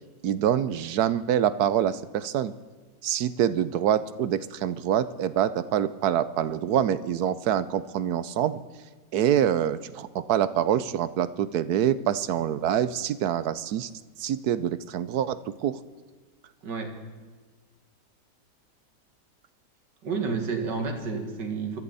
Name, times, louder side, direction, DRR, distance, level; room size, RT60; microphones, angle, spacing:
voice 1, 0.2-2.5 3.0-8.6 9.1-13.9 14.2-15.8, right 10 dB, 70° right, 15 dB, 1.1 m, -25 dB
voice 2, 16.6-16.9 20.0-21.8, right 4 dB, 85° right, 4 dB, 2.6 m, -30 dB
23.5 x 14.0 x 4.1 m, 1.4 s
omnidirectional pair, 1.9 m